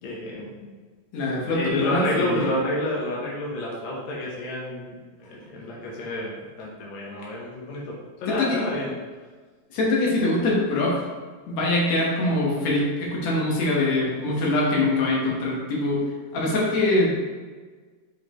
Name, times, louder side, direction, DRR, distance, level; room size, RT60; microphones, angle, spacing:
voice 1, 0.0-0.7 1.5-4.9 5.2-7.9 8.2-8.9, left 1 dB, 80° left, -4 dB, 1.6 m, -29 dB
voice 2, 1.1-2.4 8.3-8.6 9.7-11.0 11.5-16.0 16.3-17.1, left 2 dB, 65° left, -4 dB, 1.9 m, -23 dB
7.2 x 4.7 x 3.0 m, 1.4 s
omnidirectional pair, 4.5 m